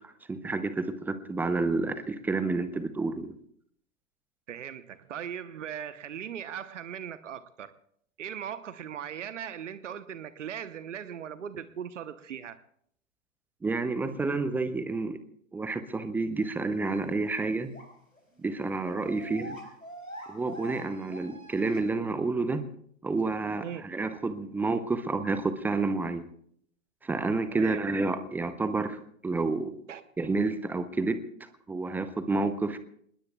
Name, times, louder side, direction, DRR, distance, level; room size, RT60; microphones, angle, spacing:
voice 1, 0.3-3.3 13.6-15.2 15.5-17.7 18.4-19.6 20.3-22.6 23.0-26.2 27.0-29.0 29.2-29.7 30.2-31.2 31.7-32.8, right 3 dB, 5° right, 12 dB, 0.6 m, -29 dB
voice 2, 4.5-7.7 8.2-12.6 23.6-23.8 27.5-27.8 29.9-30.0, right 9 dB, 65° right, 13 dB, 1.0 m, -39 dB
sound 1, 16.4-16.5 16.9-17.0 17.7-17.9 18.1-18.2 18.5-21.8, right 1 dB, 90° left, 4.9 m, -45 dB
28.0 x 20.5 x 2.3 m, 0.67 s
figure-of-eight pair, 110°, 41 cm